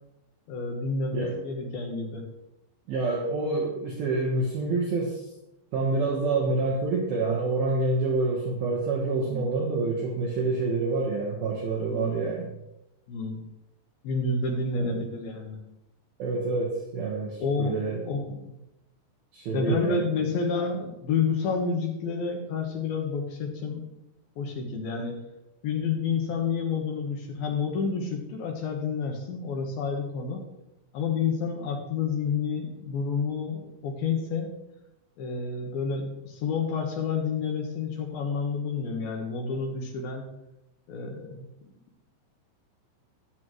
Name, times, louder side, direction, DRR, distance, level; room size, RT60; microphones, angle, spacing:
voice 1, 0.5-2.3 9.2-9.5 11.9-12.3 13.1-13.4 14.0-15.6 17.4-18.6 19.5-23.9 24.4-25.1 25.6-30.5 30.9-34.5 35.2-40.2 40.9-41.5, left 5 dB, 70° left, 1 dB, 2.4 m, -29 dB
voice 2, 2.9-5.3 5.7-12.5 14.8-15.0 16.2-18.0 19.3-20.1, right 3 dB, 65° right, -2 dB, 2.5 m, -27 dB
20.0 x 7.1 x 3.2 m, 0.89 s
omnidirectional pair, 6.0 m